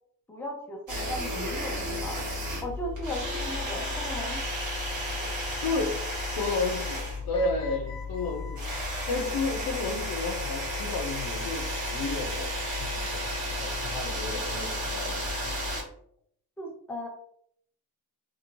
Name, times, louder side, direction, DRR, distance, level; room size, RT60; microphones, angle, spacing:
voice 1, 0.3-2.2 2.6-4.4 4.9-5.0 15.7-15.8 16.6-17.1, left 1 dB, 5° left, -1 dB, 0.5 m, -37 dB
sound 1, 0.9-15.8, left 1 dB, 50° right, 1.3 m, -33 dB
voice 2, 5.6-6.0 6.3-8.6 9.1-15.5, left 3 dB, 65° left, 4 dB, 0.7 m, -32 dB
2.7 x 2.6 x 2.9 m, 0.66 s
wide cardioid pair, 155°, 38 cm